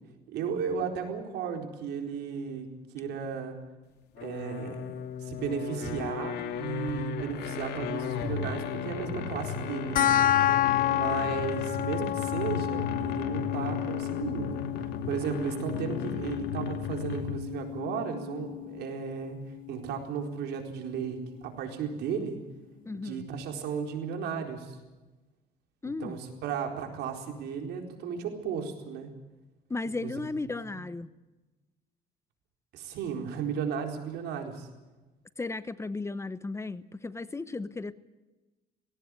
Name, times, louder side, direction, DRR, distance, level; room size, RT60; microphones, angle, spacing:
voice 1, 0.3-2.7 2.9-3.6 4.2-4.8 5.2-10.1 10.9-14.6 15.0-19.4 19.7-22.4 22.9-24.8 25.8-29.1 30.0-30.2 32.7-34.7, right 7 dB, 80° right, 4 dB, 4.3 m, -34 dB
sound 1, 4.2-17.5, left 6 dB, 75° left, 2.6 m, -35 dB
sound 2, 10.0-20.9, left 12 dB, 55° left, 0.7 m, -31 dB
voice 2, 22.8-23.3 25.8-26.2 29.7-31.1 35.4-37.9, left 3 dB, 15° left, 14 dB, 0.9 m, -35 dB
18.5 x 17.5 x 9.8 m, 1.1 s
cardioid pair, 110°, 17 cm